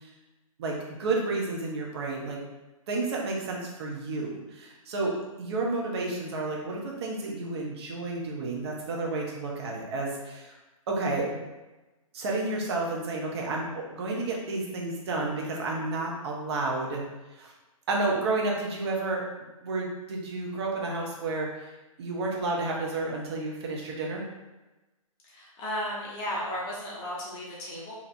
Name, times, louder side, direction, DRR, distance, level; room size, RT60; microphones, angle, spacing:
voice 1, 0.6-2.4 2.9-10.5 10.9-11.4 12.1-17.0 17.4-17.5 17.9-19.3 19.6-21.5 22.0-24.2, right 3 dB, 45° right, -1 dB, 0.9 m, -31 dB
voice 2, 25.3-27.9, equal, 25° left, -5 dB, 0.9 m, -34 dB
4.3 x 2.8 x 2.7 m, 1.1 s
figure-of-eight pair, 125°, 18 cm